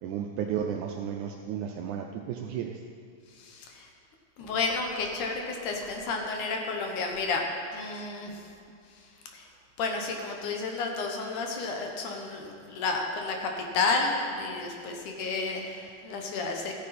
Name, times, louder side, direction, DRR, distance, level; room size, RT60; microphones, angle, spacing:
voice 1, 0.0-2.8 7.9-8.0, right 8 dB, 80° right, 3 dB, 1.8 m, -33 dB
voice 2, 3.4-3.9 4.4-7.4 7.7-8.4 9.3-9.5 9.8-16.7, left 3 dB, 70° left, 2 dB, 2.3 m, -31 dB
14.0 x 9.5 x 4.2 m, 2.3 s
omnidirectional pair, 4.0 m